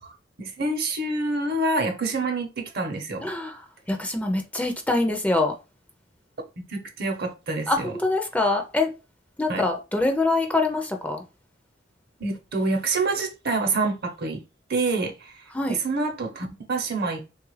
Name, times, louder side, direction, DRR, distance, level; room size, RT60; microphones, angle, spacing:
voice 1, 0.0-3.2 6.6-7.9 9.5-9.7 12.2-14.4 14.7-17.2, right 3 dB, 55° right, 0.8 m, -27 dB
voice 2, 3.2-3.6 3.9-5.5 7.7-8.9 9.4-11.2 15.5-15.8, left 2 dB, 10° left, 0.4 m, -24 dB
3.3 x 2.4 x 3.1 m
head